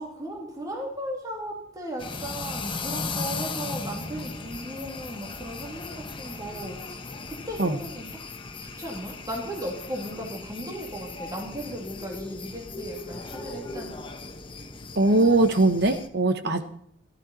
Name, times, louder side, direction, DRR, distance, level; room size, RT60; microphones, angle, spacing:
voice 1, 0.0-8.2 8.6-14.0 16.4-16.5, right 1 dB, 20° right, -1 dB, 2.9 m, -36 dB
sound 1, 2.0-16.1, left 3 dB, 25° left, 1.1 m, -37 dB
voice 2, 15.0-16.6, right 2 dB, 60° right, 9 dB, 1.4 m, -21 dB
14.5 x 12.5 x 4.3 m, 0.68 s
head